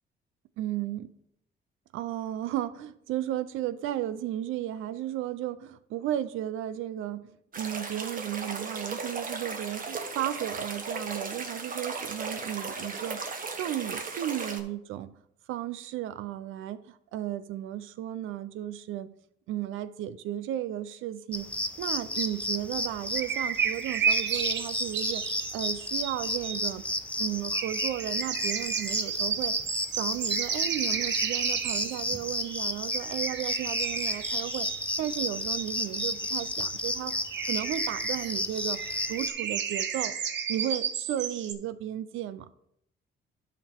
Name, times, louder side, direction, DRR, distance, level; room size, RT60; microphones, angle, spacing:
voice 1, 0.6-1.1 1.9-13.2 13.6-15.1 15.5-19.1 19.5-21.5 21.8-25.3 25.5-26.8 27.2-29.5 29.9-34.7 35.0-37.1 37.5-38.8 39.1-40.1 40.5-42.5, right 12 dB, 90° right, 0.6 m, -34 dB
sound 1, 7.5-14.6, right 4 dB, 45° right, 1.4 m, -36 dB
sound 2, 21.3-39.3, left 1 dB, 5° left, 0.7 m, -32 dB
sound 3, 22.2-22.3 23.2-26.6 27.5-36.5 37.1-41.5, right 7 dB, 65° right, 1.0 m, -33 dB
11.0 x 5.2 x 4.4 m
cardioid pair, 90°, 20 cm